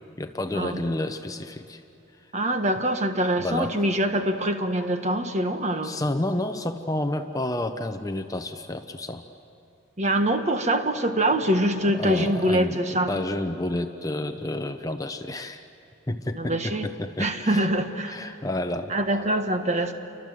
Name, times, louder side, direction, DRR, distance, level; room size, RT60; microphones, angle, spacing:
voice 1, 0.2-1.8 3.4-3.8 5.8-9.2 11.9-12.8 13.1-15.6 16.1-17.7 18.1-18.9, left 1 dB, 15° left, 7 dB, 0.8 m, -30 dB
voice 2, 2.3-6.0 10.0-13.1 16.3-16.9 17.2-18.3 18.9-19.9, right 1 dB, 35° right, 6 dB, 1.5 m, -24 dB
29.0 x 24.5 x 7.7 m, 2.7 s
head